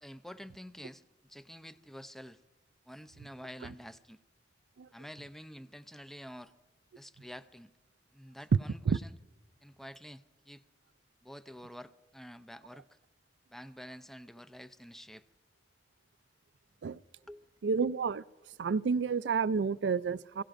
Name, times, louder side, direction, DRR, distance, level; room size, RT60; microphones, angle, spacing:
voice 1, 0.0-1.0 1.3-2.4 2.9-4.2 4.9-6.5 6.9-7.7 8.1-9.1 9.6-10.6 11.2-13.0 13.5-15.2 17.3-17.5, equal, ahead, 0.5 m, -48 dB
voice 2, 17.6-18.2 18.6-20.4, right 5 dB, 90° right, 0.4 m, -30 dB
28.5 x 16.5 x 2.6 m
head